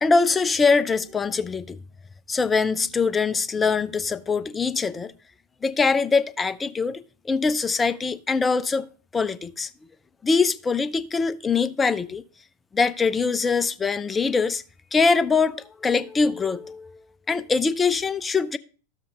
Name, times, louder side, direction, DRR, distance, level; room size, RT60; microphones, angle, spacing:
voice 1, 0.0-1.8 2.3-5.1 5.6-8.9 9.1-9.7 10.2-12.2 12.7-14.6 14.9-16.8 17.3-18.6, left 4 dB, 15° left, 0.3 m, -23 dB
12.5 x 7.3 x 2.4 m
figure-of-eight pair, 90°, 0 cm